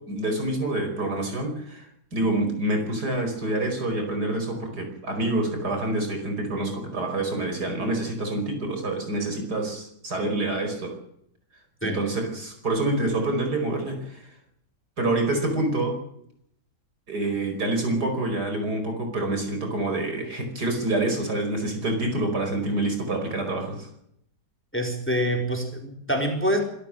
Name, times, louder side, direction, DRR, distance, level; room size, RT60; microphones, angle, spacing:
voice 1, 0.1-11.0 11.8-14.2 15.0-15.9 17.1-23.9, right 2 dB, 55° right, 5 dB, 5.5 m, -27 dB
voice 2, 24.7-26.6, equal, 5° left, 3 dB, 4.0 m, -25 dB
26.0 x 13.5 x 7.6 m, 0.73 s
omnidirectional pair, 2.0 m